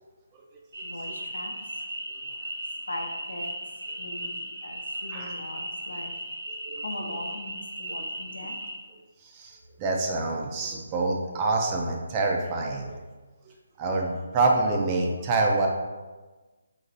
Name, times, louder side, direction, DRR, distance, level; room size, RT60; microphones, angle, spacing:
sound 1, 0.7-8.8, right 1 dB, 75° right, 1.5 m, -36 dB
voice 1, 0.8-1.7 2.9-3.5 4.0-6.1 6.7-8.6, left 1 dB, 70° left, 2 dB, 0.6 m, -39 dB
voice 2, 9.2-13.0 13.8-15.7, right 3 dB, 25° right, 0 dB, 0.4 m, -26 dB
4.0 x 2.8 x 2.6 m, 1.3 s
figure-of-eight pair, 145°, 0 cm